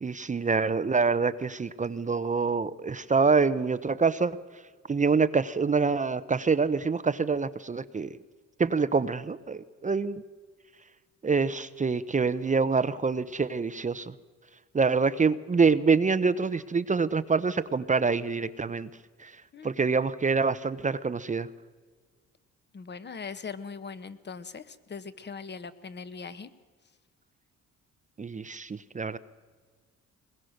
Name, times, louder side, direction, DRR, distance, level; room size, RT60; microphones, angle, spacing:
voice 1, 0.0-4.4 4.9-8.1 8.6-10.2 11.2-14.1 14.7-18.9 19.2-19.3 19.6-21.5 28.2-29.2, right 4 dB, 25° right, 13 dB, 0.7 m, -26 dB
voice 2, 22.7-26.5, left 5 dB, 35° left, 13 dB, 1.3 m, -40 dB
21.0 x 21.0 x 6.6 m, 1.5 s
cardioid pair, 90°, 30 cm